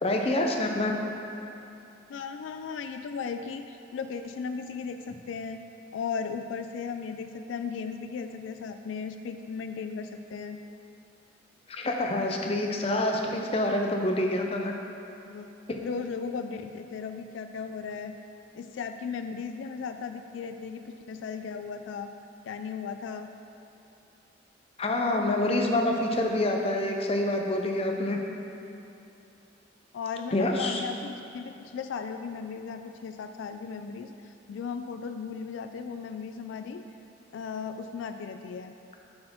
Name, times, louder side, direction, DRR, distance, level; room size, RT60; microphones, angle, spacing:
voice 1, 0.0-0.9 11.7-14.7 15.7-15.8 24.8-28.2 30.3-30.8, left 1 dB, 30° left, 2 dB, 0.5 m, -27 dB
voice 2, 2.1-5.6 5.9-10.6 15.3-15.5 15.8-18.2 18.5-22.1 22.5-23.3 29.9-36.8 37.3-38.7, left 5 dB, 75° left, 7 dB, 0.3 m, -36 dB
7.4 x 4.3 x 4.4 m, 2.9 s
head